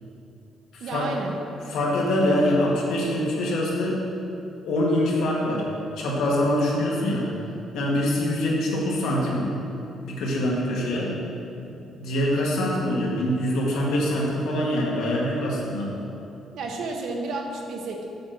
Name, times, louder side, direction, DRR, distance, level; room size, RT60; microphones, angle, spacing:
voice 1, 0.8-1.4 16.5-18.1, right 3 dB, 60° right, 2 dB, 1.0 m, -31 dB
voice 2, 1.7-4.0 4.6-5.6 6.0-7.3 7.7-9.5 10.0-11.1 11.6-15.9, left 1 dB, 75° left, -3 dB, 1.8 m, -24 dB
7.7 x 5.4 x 6.0 m, 2.8 s
cardioid pair, 175°, 0 cm